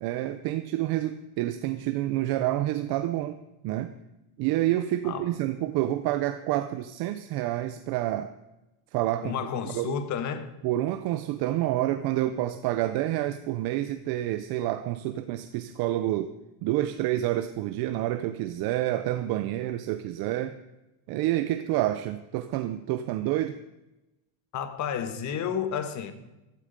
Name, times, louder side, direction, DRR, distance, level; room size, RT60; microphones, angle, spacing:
voice 1, 0.0-3.4 3.6-3.9 4.4-8.3 8.9-9.4 9.7-10.0 10.6-16.3 16.6-20.6 21.1-23.6, right 14 dB, 50° right, 0.7 m, -28 dB
voice 2, 9.2-10.5 24.5-26.1, left 8 dB, 35° left, 1.3 m, -31 dB
15.5 x 12.5 x 5.2 m
cardioid pair, 175°, 49 cm